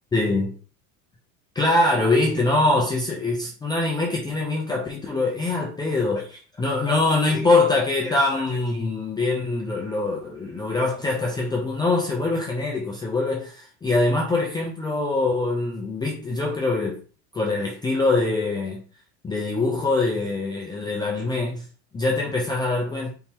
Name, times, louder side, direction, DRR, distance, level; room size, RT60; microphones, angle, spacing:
voice 1, 0.1-0.5 1.5-17.0 17.3-18.8 19.2-21.7 21.9-23.1, left 2 dB, 10° left, 0.5 m, -23 dB
4.4 x 3.5 x 2.9 m
cardioid pair, 150°, 39 cm